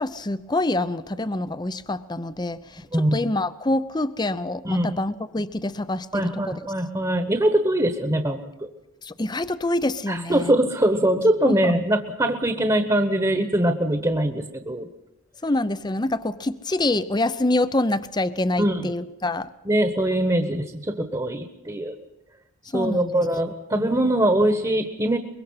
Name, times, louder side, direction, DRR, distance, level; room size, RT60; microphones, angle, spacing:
voice 1, 0.0-6.6 9.0-10.6 11.4-11.7 15.4-19.5 22.7-23.2 23.7-23.9, left 2 dB, 20° left, 14 dB, 0.6 m, -26 dB
voice 2, 2.9-3.3 4.6-5.0 6.1-8.7 10.1-14.9 18.6-18.9 19.6-21.9 22.7-25.2, right 1 dB, 20° right, 7 dB, 1.3 m, -22 dB
24.0 x 22.5 x 5.8 m, 0.96 s
head